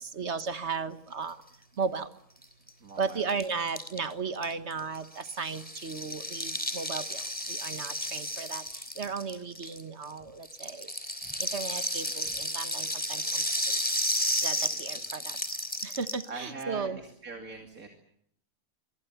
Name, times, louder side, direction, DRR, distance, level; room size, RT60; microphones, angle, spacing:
voice 1, 0.0-1.4 1.8-2.1 3.0-7.2 7.5-8.6 9.0-10.9 11.4-13.8 14.4-15.4 15.8-17.0, right 5 dB, 50° right, 11 dB, 1.6 m, -35 dB
Rattle (instrument), 2.4-2.5 2.7-2.8 3.0-10.1 10.4-16.3, equal, 5° left, 3.2 m, -33 dB
voice 2, 2.8-3.2 14.7-15.1 16.3-17.9, right 3 dB, 70° right, 4 dB, 3.2 m, -42 dB
26.5 x 23.5 x 8.1 m, 0.72 s
omnidirectional pair, 1.5 m